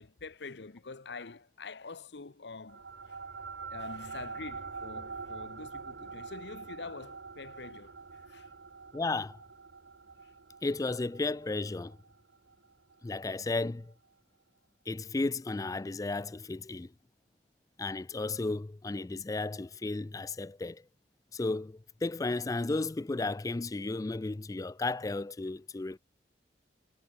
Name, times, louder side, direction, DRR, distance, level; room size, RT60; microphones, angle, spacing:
voice 1, 0.0-3.2 3.7-8.5 10.2-10.3, left 4 dB, 70° left, 0.9 m, -46 dB
sound 1, 2.7-13.5, right 4 dB, 85° right, 1.3 m, -45 dB
voice 2, 8.9-9.4 10.6-12.0 13.0-13.9 14.9-16.9 17.8-20.8 21.3-26.0, left 3 dB, 20° left, 0.4 m, -34 dB
head